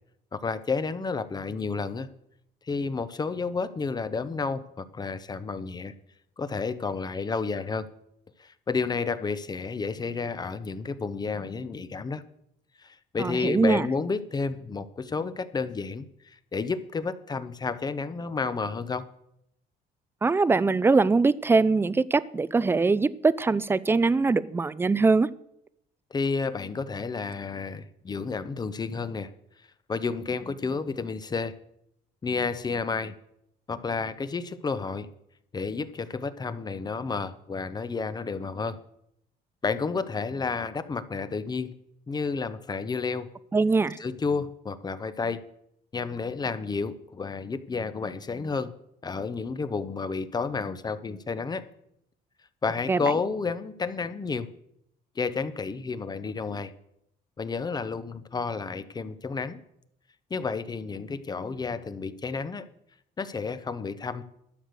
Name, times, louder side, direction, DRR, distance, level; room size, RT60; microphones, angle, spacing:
voice 1, 0.3-2.1 2.7-5.9 6.4-7.9 8.4-12.2 12.8-19.1 26.1-29.3 29.9-31.5 32.2-33.2 33.7-35.1 35.5-38.8 39.6-41.7 42.1-43.3 44.0-45.4 45.9-48.7 49.0-51.6 52.6-54.5 55.2-56.7 57.4-59.6 60.3-62.7 63.2-64.2, left 4 dB, 25° left, 13 dB, 0.7 m, -31 dB
voice 2, 13.2-13.9 20.2-25.3 43.5-44.0 52.9-53.0, right 3 dB, 15° right, 18 dB, 0.4 m, -22 dB
11.5 x 6.6 x 6.6 m, 0.77 s
cardioid pair, 110°, 17 cm